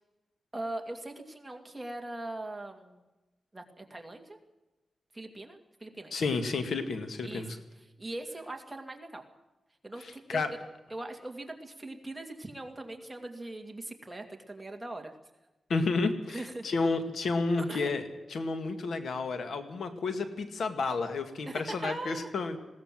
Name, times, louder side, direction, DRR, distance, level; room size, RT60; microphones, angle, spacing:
voice 1, 0.5-3.0 3.5-4.4 5.1-6.2 7.2-7.5 8.0-9.2 9.8-10.6 10.9-15.1 16.3-16.7 17.6-18.0 21.5-22.3, right 2 dB, 10° right, 3 dB, 2.4 m, -40 dB
voice 2, 6.1-7.6 10.0-10.5 15.7-18.0 18.3-22.6, left 3 dB, 75° left, 8 dB, 2.1 m, -31 dB
20.5 x 17.0 x 7.7 m, 1.1 s
wide cardioid pair, 130°, 0 cm